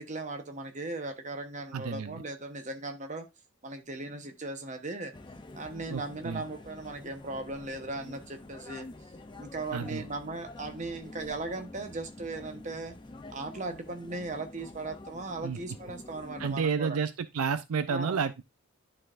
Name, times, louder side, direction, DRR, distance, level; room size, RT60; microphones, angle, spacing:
voice 1, 0.0-3.3 3.6-5.1 5.5-8.9 9.4-12.9 13.3-17.0 17.9-18.2, right 2 dB, 35° right, 0.9 m, -38 dB
voice 2, 1.7-2.2 5.9-6.4 9.7-10.1 15.4-15.6 16.4-18.4, right 6 dB, 75° right, 0.5 m, -31 dB
sound 1, 5.1-16.6, left 2 dB, 20° left, 0.5 m, -47 dB
11.5 x 4.2 x 2.5 m
head